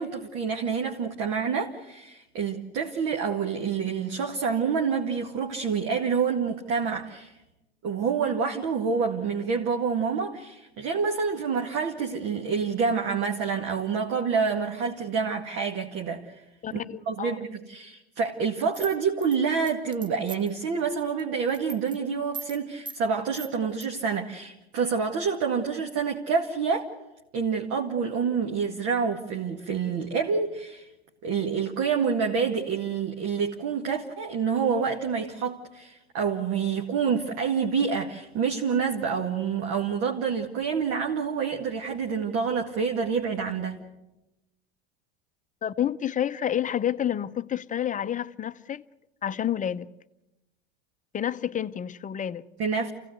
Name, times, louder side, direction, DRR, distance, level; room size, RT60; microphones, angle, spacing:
voice 1, 0.0-7.3 7.8-16.4 16.7-16.8 17.1-26.9 27.3-30.9 31.2-43.8 52.6-52.9, right 6 dB, 50° right, 2.0 m, -27 dB
voice 2, 16.6-17.4 45.6-48.8 49.2-49.9 51.1-52.5, left 10 dB, 25° left, 0.7 m, -29 dB
sound 1, 18.7-20.6 21.0-21.2 21.5-22.0 22.3-22.6 22.9-23.0 23.3-23.9, right 4 dB, 15° right, 0.9 m, -40 dB
28.0 x 16.5 x 8.1 m
hypercardioid pair, 80°, 31 cm